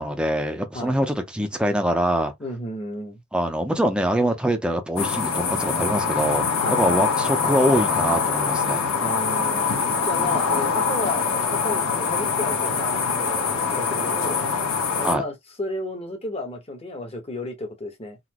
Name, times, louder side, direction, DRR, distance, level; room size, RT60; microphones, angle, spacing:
voice 1, 0.0-2.3 3.3-8.9 10.2-10.3 15.0-15.2, equal, 5° right, 0.7 m, -24 dB
voice 2, 2.4-3.2 6.5-6.8 8.9-9.7 10.0-11.2 11.5-14.4 15.0-18.2, left 2 dB, 30° left, 1.1 m, -32 dB
sound 1, 5.0-15.2, left 5 dB, 70° left, 1.2 m, -24 dB
4.0 x 2.6 x 3.0 m
head